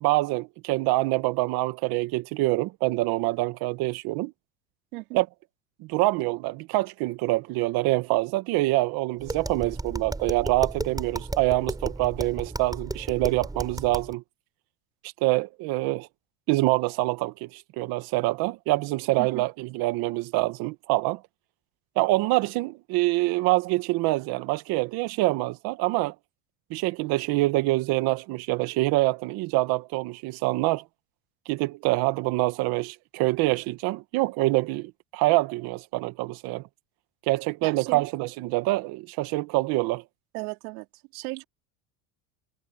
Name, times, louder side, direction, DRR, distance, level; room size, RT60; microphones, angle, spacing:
voice 1, 0.0-4.3 5.1-5.3 5.8-14.2 15.0-16.1 16.5-21.2 22.0-26.1 26.7-30.8 31.5-36.7 37.3-40.0, right 20 dB, 55° right, 1.3 m, -25 dB
Tap, 9.2-14.1, right 2 dB, 10° right, 7.8 m, -34 dB
voice 2, 37.6-38.1 40.3-40.9 41.1-41.4, right 23 dB, 85° right, 4.4 m, -35 dB
cardioid pair, 145°, 43 cm